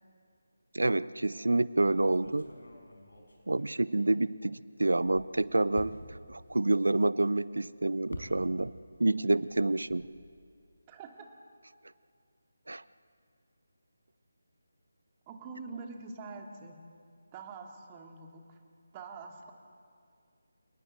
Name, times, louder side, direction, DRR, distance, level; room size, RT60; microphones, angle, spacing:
voice 1, 0.7-2.5 3.5-6.0 6.3-8.7 9.0-10.1 12.7-12.8, right 2 dB, 70° right, 19 dB, 0.7 m, -28 dB
sound 1, 1.8-4.5 4.8-8.9 9.2-10.5, left 1 dB, 65° left, 5.2 m, -49 dB
voice 2, 10.9-11.3 15.3-16.8 17.3-18.6 18.9-19.5, right 4 dB, 20° right, 3 dB, 2.4 m, -45 dB
29.0 x 19.0 x 7.7 m, 2.2 s
figure-of-eight pair, 155°, 0 cm